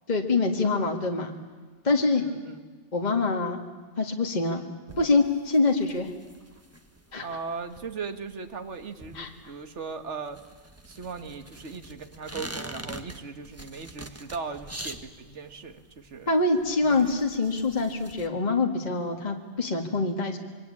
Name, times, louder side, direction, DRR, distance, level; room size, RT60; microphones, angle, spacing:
voice 1, 0.1-1.3 1.8-2.2 2.9-3.6 4.0-4.6 5.0-6.1 7.1-7.3 9.1-9.3 16.3-20.4, left 3 dB, 35° left, 3 dB, 1.9 m, -25 dB
voice 2, 2.2-2.6 7.2-10.4 10.9-16.3 16.8-17.5, right 5 dB, 65° right, 8 dB, 1.9 m, -38 dB
sound 1, 4.9-18.3, right 1 dB, 10° right, 1.4 m, -45 dB
27.0 x 23.0 x 8.6 m, 1.4 s
omnidirectional pair, 1.3 m